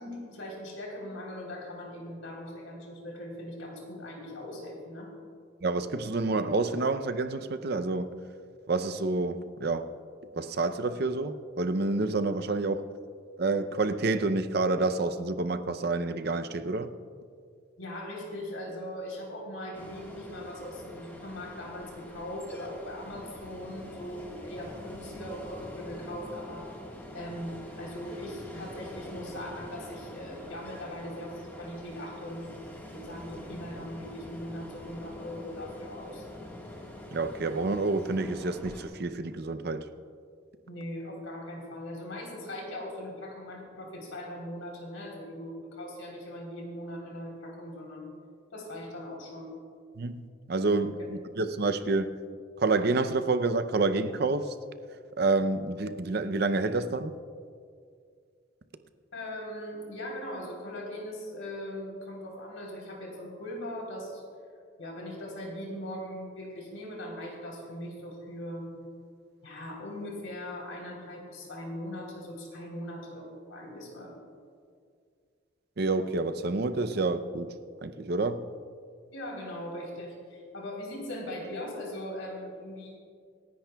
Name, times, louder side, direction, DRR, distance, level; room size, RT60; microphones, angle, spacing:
voice 1, 0.0-5.1 17.8-26.8 27.1-32.5 32.9-36.2 40.7-48.1 48.5-49.5 51.0-51.1 59.1-64.2 64.8-68.7 69.4-74.2 79.1-83.0, left 1 dB, 85° left, -1 dB, 3.5 m, -40 dB
voice 2, 5.6-8.1 8.7-9.9 10.4-12.8 13.4-16.9 37.1-39.8 50.0-52.2 52.6-54.5 55.2-57.1 75.8-77.5 77.8-78.5, right 3 dB, 50° right, 10 dB, 0.6 m, -28 dB
Ocean, 19.7-38.9, left 1 dB, 10° left, 1.5 m, -45 dB
27.0 x 10.5 x 2.3 m, 2.2 s
head